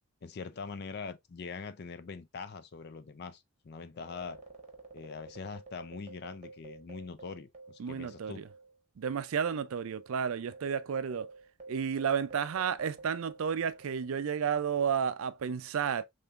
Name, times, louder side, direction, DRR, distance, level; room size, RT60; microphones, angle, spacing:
voice 1, 0.2-4.4 4.9-8.4, left 5 dB, 45° left, 0.4 m, -43 dB
sound 1, 3.9-8.8 9.0-9.2 9.8-14.5, right 3 dB, 30° right, 1.0 m, -51 dB
voice 2, 7.8-8.4 9.0-11.3 11.7-16.0, right 7 dB, 70° right, 0.4 m, -32 dB
3.6 x 3.4 x 2.4 m
head